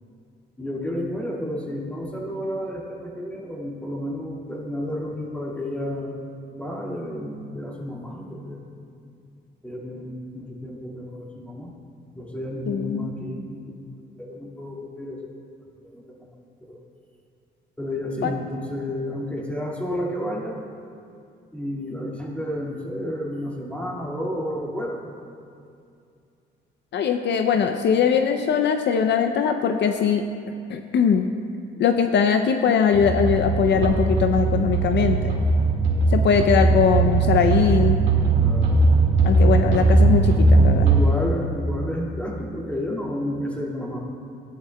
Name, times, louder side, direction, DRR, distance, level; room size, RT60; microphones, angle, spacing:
voice 1, 0.6-6.2 6.5-8.7 9.6-11.7 12.1-13.7 14.2-15.3 15.8-16.3 16.6-16.8 17.8-20.6 21.5-25.0 38.4-38.8 40.8-44.0, left 1 dB, 5° left, -3 dB, 2.0 m, -31 dB
voice 2, 12.7-13.1 18.2-18.3 26.9-31.3 31.8-35.4 36.1-38.0 39.2-40.9, left 7 dB, 65° left, 6 dB, 0.5 m, -21 dB
sound 1, 32.9-41.0, right 3 dB, 75° right, 1.9 m, -19 dB
15.0 x 11.0 x 2.3 m, 2.4 s
cardioid pair, 90°, 20 cm